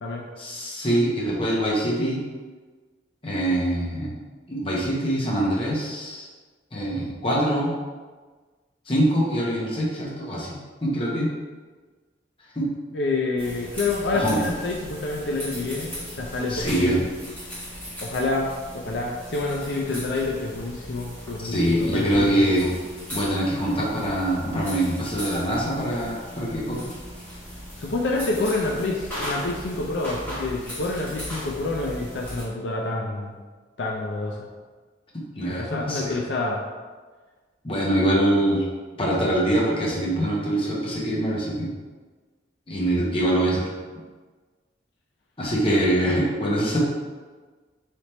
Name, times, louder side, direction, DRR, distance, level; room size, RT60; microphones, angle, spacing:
voice 1, 0.4-2.2 3.2-4.1 4.5-6.3 6.7-7.7 8.9-11.3 12.6-12.7 14.1-14.4 16.5-17.0 21.4-22.7 23.1-26.9 35.3-36.1 37.6-38.7 39.0-41.7 42.7-43.7 45.4-46.8, right 1 dB, 30° left, -5 dB, 0.9 m, -24 dB
voice 2, 12.9-17.0 18.0-22.5 27.8-33.4 33.8-34.5 35.4-36.6, left 2 dB, 70° left, -1 dB, 0.5 m, -28 dB
sound 1, 13.4-32.4, equal, 10° left, 1.5 m, -37 dB
3.4 x 2.9 x 4.2 m, 1.4 s
head